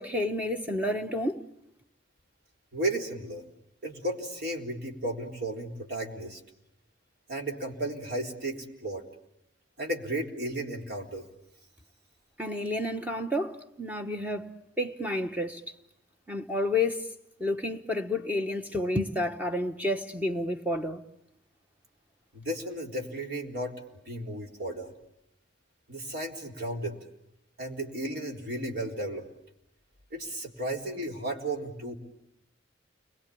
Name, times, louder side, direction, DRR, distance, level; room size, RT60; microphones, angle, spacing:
voice 1, 0.0-1.5 12.4-14.5 14.8-15.6 16.3-17.1 17.4-21.0, left 1 dB, 10° right, 1.1 m, -30 dB
voice 2, 2.7-3.4 3.8-6.4 7.3-9.0 9.8-11.3 22.3-24.9 25.9-27.0 27.6-29.2 30.1-31.9, right 1 dB, 60° right, 3.9 m, -34 dB
30.0 x 22.5 x 8.6 m
head